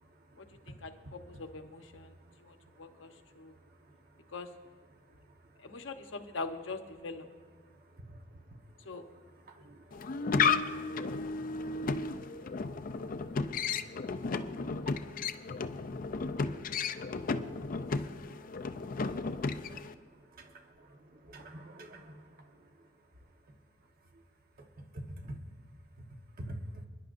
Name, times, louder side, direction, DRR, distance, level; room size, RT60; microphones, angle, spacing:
voice 1, 1.3-2.1 2.5-3.1 3.4-3.5 4.3-4.5 5.6-7.3 8.9-9.0, left 3 dB, 80° left, 6 dB, 1.0 m, -42 dB
voice 2, 9.3-12.5 13.0-14.1 18.6-18.7 19.6-22.7 24.9-25.3 26.5-26.9, right 1 dB, 50° right, 3 dB, 1.3 m, -49 dB
sound 1, 9.9-19.9, left 4 dB, 45° left, 0.5 m, -33 dB
26.5 x 10.5 x 2.6 m, 1.5 s
head